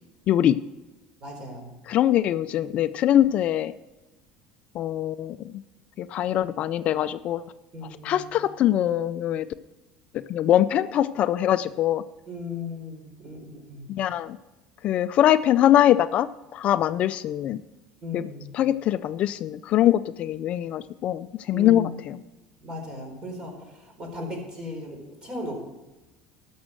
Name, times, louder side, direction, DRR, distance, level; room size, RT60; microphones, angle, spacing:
voice 1, 0.3-0.6 1.9-3.7 4.7-5.5 6.0-7.4 8.0-9.5 10.3-12.0 13.9-14.4 14.8-17.6 18.1-18.2 18.5-22.2, left 12 dB, 50° left, 13 dB, 0.4 m, -23 dB
voice 2, 1.2-1.7 7.7-8.3 12.3-13.9 18.0-18.5 21.5-21.9 22.6-25.6, left 2 dB, 30° right, 2 dB, 4.1 m, -37 dB
12.5 x 6.2 x 7.6 m, 1.1 s
supercardioid pair, 120°, 3 cm